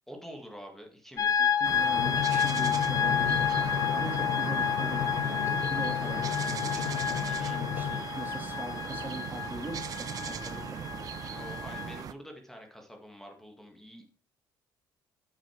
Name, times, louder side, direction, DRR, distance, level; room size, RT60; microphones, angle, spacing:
voice 1, 0.1-1.4 7.2-7.6 7.9-8.0 11.2-14.1, equal, 5° left, 2 dB, 1.7 m, -47 dB
sound 1, 1.2-12.0, left 8 dB, 45° left, 0.8 m, -30 dB
voice 2, 1.4-6.9 7.5-10.8, right 2 dB, 25° right, 3 dB, 1.9 m, -41 dB
sound 2, 1.6-12.1, right 8 dB, 50° right, 0.6 m, -38 dB
Drum, 2.0-8.0, left 11 dB, 75° left, 0.5 m, -34 dB
6.9 x 6.2 x 4.4 m, 0.43 s
cardioid pair, 100°, 8 cm